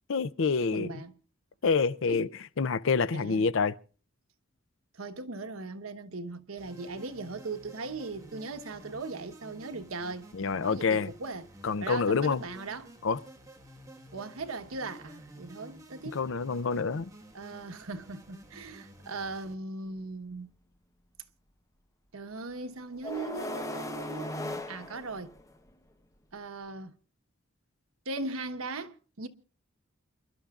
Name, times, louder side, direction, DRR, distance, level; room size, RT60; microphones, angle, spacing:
voice 1, 0.1-0.9 1.6-2.3 2.6-3.7 10.3-11.1 11.6-12.4 13.0-13.2 16.1-17.1, left 5 dB, 65° left, 0.5 m, -27 dB
voice 2, 0.6-1.1 2.1-2.3 3.1-3.5 4.9-11.5 11.8-12.9 14.1-16.3 17.3-20.5 22.1-25.3 26.3-27.0 28.0-29.3, right 3 dB, 85° right, 1.2 m, -39 dB
sound 1, 6.6-19.5, right 1 dB, 15° right, 1.6 m, -52 dB
sound 2, 19.9-20.0 23.0-25.7, left 1 dB, 15° left, 0.9 m, -37 dB
29.0 x 11.5 x 2.4 m
head